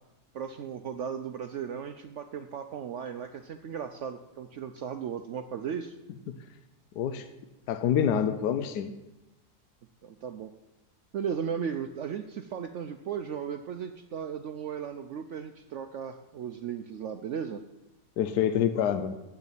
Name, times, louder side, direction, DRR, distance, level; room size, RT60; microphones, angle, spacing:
voice 1, 0.3-6.0 10.0-10.5 11.1-17.6, right 7 dB, 70° right, 8 dB, 0.7 m, -36 dB
voice 2, 7.7-8.9 18.2-19.1, left 9 dB, 80° left, 9 dB, 1.2 m, -26 dB
8.3 x 6.9 x 8.2 m, 0.97 s
omnidirectional pair, 1.7 m